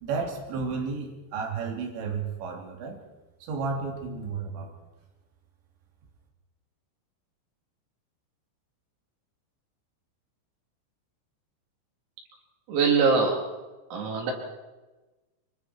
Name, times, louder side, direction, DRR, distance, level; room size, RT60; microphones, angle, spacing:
voice 1, 0.0-3.0 3.4-4.7, right 4 dB, 65° right, 1 dB, 5.2 m, -32 dB
voice 2, 12.7-13.4 13.9-14.3, right 5 dB, 90° right, 0 dB, 6.7 m, -22 dB
25.5 x 24.0 x 4.7 m, 1.2 s
omnidirectional pair, 5.9 m